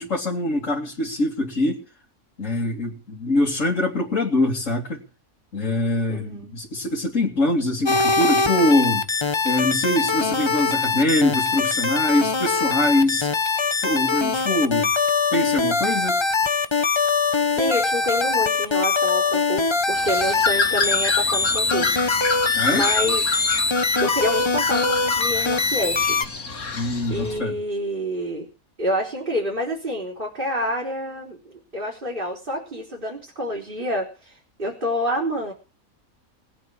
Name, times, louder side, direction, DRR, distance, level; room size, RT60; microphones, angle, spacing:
voice 1, 0.0-1.8 2.4-5.0 5.5-9.1 9.4-13.3 13.8-14.9 15.3-16.2 22.5-22.9 26.7-27.6, left 1 dB, 60° left, -4 dB, 3.2 m, -23 dB
voice 2, 6.1-6.6 17.5-22.3 22.7-23.4 24.0-26.2 27.1-28.5 28.8-35.5, equal, 35° right, -2 dB, 4.9 m, -28 dB
sound 1, 7.8-26.3, left 4 dB, 25° left, 0.8 m, -22 dB
Bird, 19.9-27.4, left 4 dB, 90° left, 2.6 m, -28 dB
19.5 x 8.7 x 7.3 m, 0.35 s
omnidirectional pair, 1.5 m